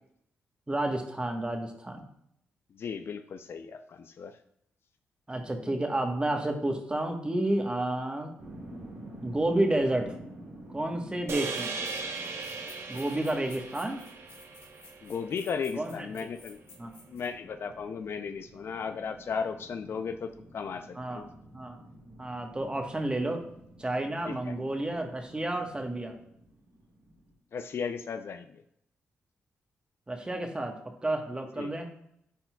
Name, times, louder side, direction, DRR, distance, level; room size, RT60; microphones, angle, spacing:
voice 1, 0.7-2.0 5.3-8.3 9.2-10.1 10.7-11.8 12.9-14.0 15.8-16.3 16.8-16.9 20.9-21.2 21.5-21.8 22.2-23.4 23.8-26.2 30.1-31.9, right 1 dB, 20° right, 4 dB, 1.2 m, -30 dB
voice 2, 2.7-4.4 15.0-16.6 17.1-21.3 24.2-24.5 27.5-28.6 31.6-31.7, left 6 dB, 60° left, 9 dB, 0.4 m, -36 dB
sound 1, 8.4-27.3, right 1 dB, 85° right, 2.1 m, -50 dB
sound 2, 11.3-15.7, right 4 dB, 65° right, 0.7 m, -38 dB
sound 3, 11.4-17.3, left 4 dB, 75° left, 2.1 m, -53 dB
9.9 x 4.3 x 2.3 m, 0.72 s
supercardioid pair, 50°, 5 cm